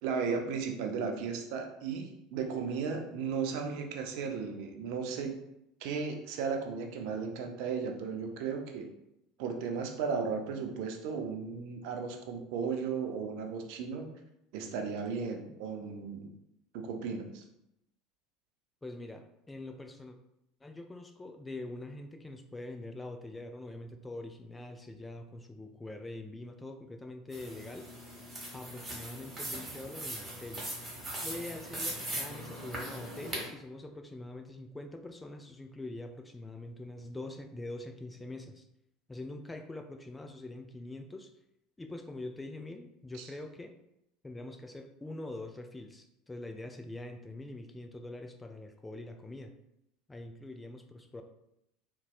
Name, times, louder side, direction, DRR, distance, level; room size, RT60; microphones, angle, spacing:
voice 1, 0.0-5.3 5.8-8.9 9.4-14.1 14.5-16.3 16.7-17.4 43.1-43.3, right 5 dB, 60° right, 4 dB, 0.5 m, -35 dB
voice 2, 18.8-20.2 20.6-27.9 28.5-30.7 31.2-38.7 39.1-41.3 41.8-43.7 44.2-49.5 50.1-51.2, left 2 dB, 15° left, 5 dB, 0.3 m, -44 dB
sound 1, 27.3-33.4, right 1 dB, 20° right, 1.2 m, -40 dB
3.9 x 2.2 x 2.4 m, 0.83 s
hypercardioid pair, 75°, 0 cm